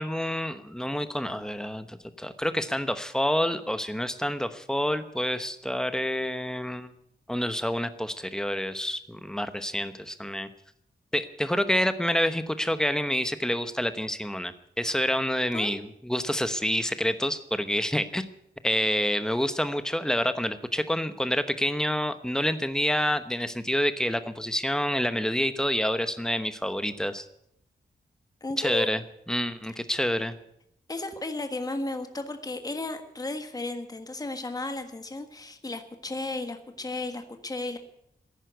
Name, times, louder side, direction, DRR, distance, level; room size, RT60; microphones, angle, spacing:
voice 1, 0.0-6.9 7.3-10.5 11.1-18.2 18.6-27.2 28.6-29.0 29.3-30.3, equal, 5° left, 10 dB, 1.0 m, -28 dB
voice 2, 28.4-28.9 30.9-37.8, left 2 dB, 20° left, 7 dB, 1.5 m, -34 dB
14.5 x 11.0 x 9.2 m, 0.74 s
wide cardioid pair, 160°, 17 cm